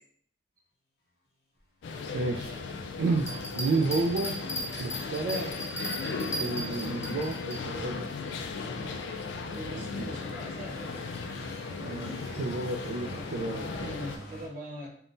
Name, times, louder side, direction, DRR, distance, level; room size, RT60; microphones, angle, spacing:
sound 1, 1.8-14.2, left 4 dB, 85° left, 0.3 m, -37 dB
sound 2, 2.1-14.5, left 1 dB, 60° left, 0.9 m, -51 dB
voice 1, 2.1-4.5 4.8-5.5 6.4-8.1 9.7-10.1 11.8-14.0, right 3 dB, 80° right, 0 dB, 0.3 m, -31 dB
sound 3, 3.2-7.6, equal, 15° left, 0.4 m, -36 dB
voice 2, 9.5-11.0 13.8-15.0, equal, 50° right, -3 dB, 0.8 m, -41 dB
3.6 x 2.1 x 2.5 m, 0.65 s
head